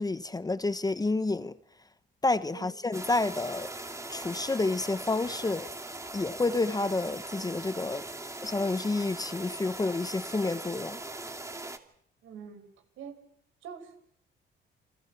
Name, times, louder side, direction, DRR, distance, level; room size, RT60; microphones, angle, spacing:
voice 1, 0.0-1.5 2.2-3.7 4.1-5.7 6.1-8.0 8.4-11.0, left 3 dB, 20° left, 0.9 m, -29 dB
sound 1, 2.9-11.8, right 2 dB, 15° right, 2.4 m, -40 dB
voice 2, 12.2-12.7 13.0-13.2 13.6-14.0, right 7 dB, 85° right, 5.3 m, -44 dB
29.5 x 24.5 x 5.8 m
cardioid pair, 90°, 20 cm